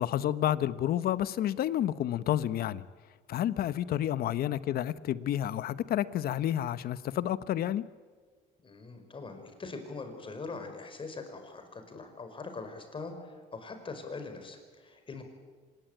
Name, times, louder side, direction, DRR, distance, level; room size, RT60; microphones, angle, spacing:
voice 1, 0.0-2.8 3.3-7.8, left 11 dB, 65° left, 15 dB, 1.0 m, -30 dB
voice 2, 8.6-15.2, left 3 dB, 30° left, 6 dB, 5.2 m, -42 dB
25.5 x 20.5 x 9.2 m, 1.5 s
cardioid pair, 110°, 17 cm